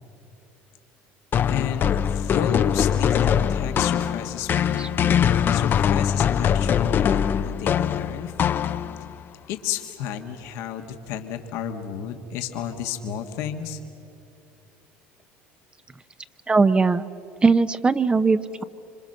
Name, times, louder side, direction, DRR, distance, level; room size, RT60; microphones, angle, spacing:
sound 1, 1.3-9.1, left 8 dB, 45° left, 0.7 m, -22 dB
voice 1, 1.5-4.9 5.5-8.3 9.5-13.8, left 9 dB, 75° left, 4 dB, 1.6 m, -32 dB
voice 2, 16.5-17.1 17.4-18.6, right 4 dB, 20° right, 11 dB, 0.8 m, -19 dB
26.0 x 25.5 x 6.6 m, 2.7 s
supercardioid pair, 95°, 5 cm